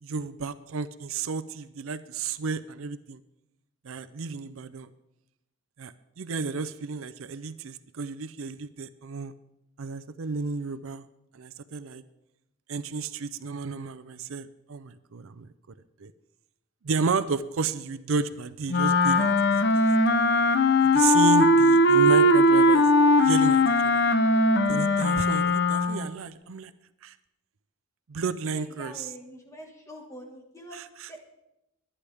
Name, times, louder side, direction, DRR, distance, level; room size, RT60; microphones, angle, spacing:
voice 1, 0.0-3.2 3.8-4.9 5.8-9.3 9.8-11.0 11.3-12.0 12.7-15.5 16.0-16.1 16.8-19.3 19.7-19.8 20.8-22.9 23.2-24.0 24.7-26.7 27.0-27.1 28.1-29.1 30.7-31.1, right 4 dB, 75° right, 14 dB, 0.5 m, -32 dB
Wind instrument woodwind instrument, 18.7-26.1, left 1 dB, 50° left, 0.8 m, -20 dB
voice 2, 28.5-30.8 31.1-31.2, equal, 15° left, 2 dB, 1.7 m, -45 dB
21.5 x 10.0 x 3.5 m, 0.89 s
head